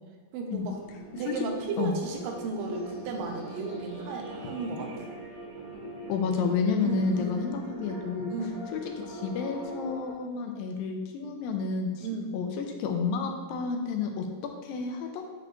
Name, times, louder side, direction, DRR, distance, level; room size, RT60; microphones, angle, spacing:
voice 1, 0.3-0.8 1.2-5.1 6.8-7.5 8.3-8.6 12.0-12.3, right 3 dB, 85° right, 2 dB, 2.5 m, -34 dB
sound 1, 0.5-10.1, right 1 dB, 30° right, 0.5 m, -42 dB
voice 2, 6.1-8.3 8.7-8.8 9.1-12.1 12.3-14.3 14.6-15.2, left 5 dB, 85° left, 3 dB, 2.4 m, -30 dB
8.7 x 4.0 x 3.1 m, 1.4 s
omnidirectional pair, 4.1 m